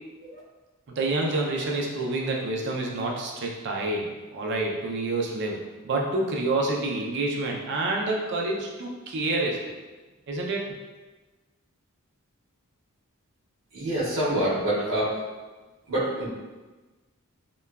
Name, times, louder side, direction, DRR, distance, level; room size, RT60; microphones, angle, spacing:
voice 1, 1.0-9.7 10.3-10.7, right 2 dB, 55° right, -1 dB, 0.4 m, -28 dB
voice 2, 13.7-15.2 15.9-16.3, right 1 dB, 80° right, -9 dB, 0.8 m, -26 dB
2.9 x 2.2 x 2.2 m, 1.2 s
head